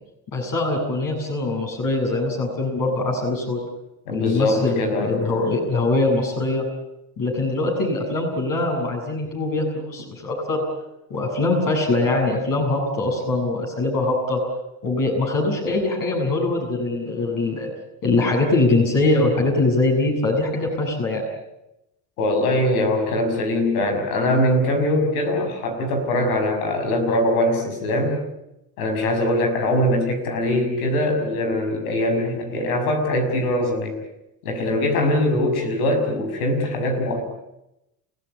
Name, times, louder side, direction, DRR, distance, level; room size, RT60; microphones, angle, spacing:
voice 1, 0.3-3.6 4.1-6.7 7.2-10.6 11.1-14.4 14.8-17.7 18.0-21.2, left 2 dB, 50° left, 0 dB, 7.8 m, -22 dB
voice 2, 4.1-5.2 22.2-28.2 28.8-34.0 34.4-37.2, left 1 dB, 90° left, 5 dB, 6.2 m, -22 dB
29.5 x 16.0 x 9.8 m, 0.89 s
supercardioid pair, 85°, 43 cm